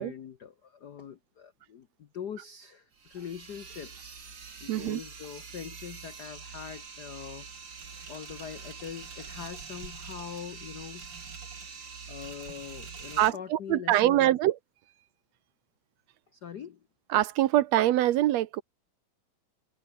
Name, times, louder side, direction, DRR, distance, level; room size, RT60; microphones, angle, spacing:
voice 1, 0.0-4.2 4.6-7.7 8.1-11.1 12.1-14.3 16.3-16.8, left 8 dB, 75° left, 0.9 m, -43 dB
sound 1, 2.9-13.3, right 5 dB, 40° right, 3.4 m, -44 dB
voice 2, 4.7-5.0 13.2-14.6 17.1-18.6, right 14 dB, 75° right, 1.9 m, -24 dB
omnidirectional pair, 3.3 m